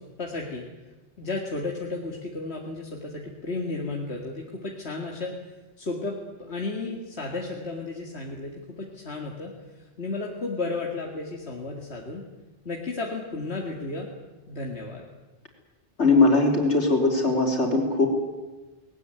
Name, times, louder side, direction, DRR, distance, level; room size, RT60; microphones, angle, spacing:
voice 1, 0.2-0.6 1.2-5.3 5.8-12.2 12.6-14.1 14.5-15.0, left 3 dB, 70° left, 0 dB, 2.5 m, -33 dB
voice 2, 16.0-18.1, left 3 dB, 85° left, 2 dB, 4.7 m, -20 dB
20.0 x 19.0 x 9.4 m, 1.1 s
omnidirectional pair, 1.1 m